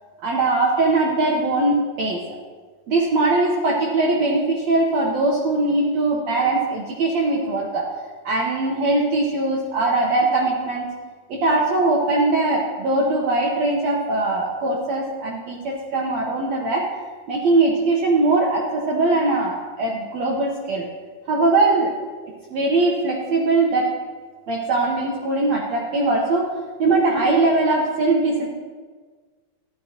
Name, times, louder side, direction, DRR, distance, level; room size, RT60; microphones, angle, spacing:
voice 1, 0.2-2.4 2.9-7.9 8.2-10.9 11.3-16.9 17.3-20.9 21.3-21.9 22.5-23.9 24.5-26.5 26.8-28.5, right 2 dB, 85° right, -2 dB, 1.5 m, -21 dB
14.0 x 12.0 x 2.9 m, 1.5 s
omnidirectional pair, 4.6 m